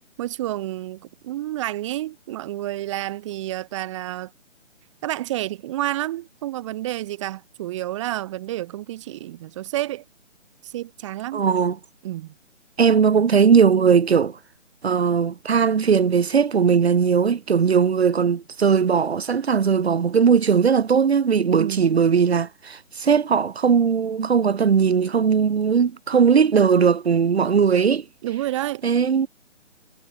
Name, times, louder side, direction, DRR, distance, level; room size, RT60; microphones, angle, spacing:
voice 1, 0.2-4.3 5.0-10.0 10.6-11.4 12.0-12.3 21.6-21.8 28.2-28.8, right 14 dB, 25° right, 2.9 m, -29 dB
voice 2, 11.3-11.8 12.8-14.4 14.8-28.1 28.8-29.3, right 6 dB, 55° right, 2.3 m, -19 dB
hypercardioid pair, 160°, 38 cm